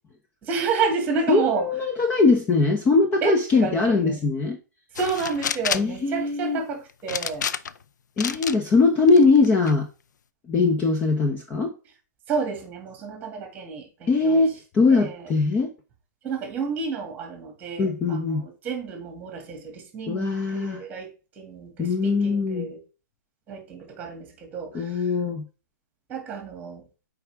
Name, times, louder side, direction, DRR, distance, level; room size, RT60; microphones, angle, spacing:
voice 1, 0.4-1.7 3.2-4.2 4.9-7.5 12.3-14.5 14.9-15.3 16.2-22.8 23.5-25.1 26.1-26.9, right 5 dB, 15° right, 2.3 m, -30 dB
voice 2, 1.3-4.6 5.7-6.6 8.2-9.9 10.5-11.7 14.1-15.7 17.8-18.4 20.1-20.8 21.8-22.7 24.7-25.4, left 3 dB, 15° left, 0.8 m, -21 dB
sound 1, 4.9-6.0 7.1-7.8 8.2-8.6 9.1-9.7, left 7 dB, 80° left, 0.6 m, -29 dB
7.9 x 4.9 x 3.6 m
hypercardioid pair, 155°, 10 cm